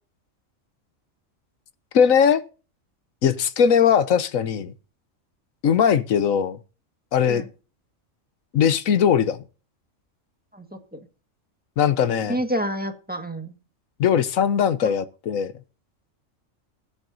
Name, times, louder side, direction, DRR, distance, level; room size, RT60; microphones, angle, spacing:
voice 1, 1.9-2.4 3.2-4.7 5.6-6.6 7.1-7.4 8.5-9.4 11.8-12.4 14.0-15.5, left 7 dB, 85° left, 1.3 m, -20 dB
voice 2, 12.3-13.5 14.8-14.9, equal, 5° right, 1.6 m, -28 dB
20.0 x 8.1 x 2.7 m
omnidirectional pair, 1.4 m